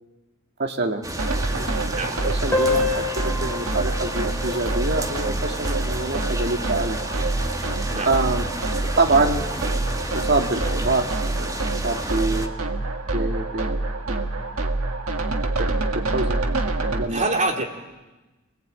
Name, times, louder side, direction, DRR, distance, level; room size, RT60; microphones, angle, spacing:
voice 1, 0.6-1.1 1.5-1.9 2.2-2.9 3.2-7.0 8.0-8.5 9.0-9.5 10.1-11.5 11.8-12.5 13.1-14.2 15.6-15.7 15.9-16.4 16.8-17.3 17.6-17.7, right 3 dB, 50° right, 3 dB, 2.3 m, -25 dB
sound 1, 1.0-12.5, right 1 dB, 15° right, 1.6 m, -32 dB
sound 2, 1.2-17.0, right 2 dB, 75° right, 2.0 m, -26 dB
sound 3, 2.5-7.5, left 3 dB, 10° left, 3.6 m, -30 dB
voice 2, 17.1-17.6, right 2 dB, 35° right, 2 dB, 3.1 m, -25 dB
27.0 x 20.0 x 9.0 m, 1.1 s
head